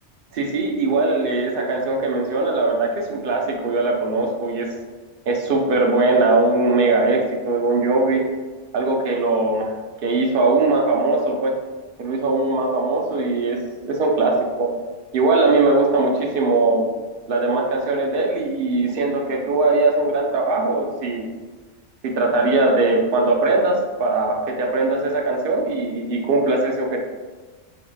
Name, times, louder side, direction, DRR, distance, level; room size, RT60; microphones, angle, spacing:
voice 1, 0.3-4.7 5.3-8.2 8.7-9.7 10.0-11.5 12.0-14.7 15.1-16.8 17.3-21.3 22.0-27.0, right 2 dB, 55° right, 0 dB, 0.9 m, -20 dB
4.9 x 3.8 x 2.3 m, 1.3 s
omnidirectional pair, 1.2 m